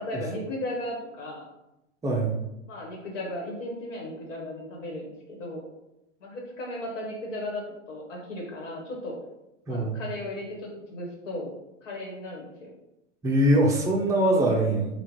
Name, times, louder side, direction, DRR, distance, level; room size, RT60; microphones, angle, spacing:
voice 1, 0.0-1.5 2.7-5.6 6.2-9.1 9.7-11.5 11.8-12.7, left 1 dB, 75° left, -1 dB, 1.3 m, -36 dB
voice 2, 13.2-14.9, right 1 dB, 10° right, -2 dB, 0.5 m, -22 dB
3.6 x 2.4 x 3.0 m, 0.89 s
hypercardioid pair, 125°, 37 cm